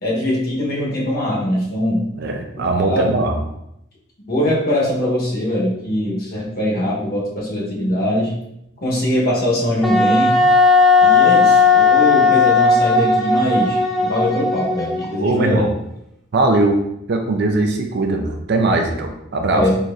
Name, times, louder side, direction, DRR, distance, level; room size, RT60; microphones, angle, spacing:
voice 1, 0.0-2.0 2.5-3.2 4.3-8.3 8.8-10.3 11.0-15.7 19.5-19.8, left 1 dB, 50° left, -5 dB, 1.1 m, -21 dB
voice 2, 2.2-3.4 15.2-15.7 16.3-16.8 17.1-19.7, right 2 dB, 55° right, 4 dB, 0.5 m, -19 dB
Wind instrument woodwind instrument, 9.8-15.3, left 4 dB, ahead, 0.5 m, -15 dB
3.9 x 3.0 x 2.5 m, 0.80 s
head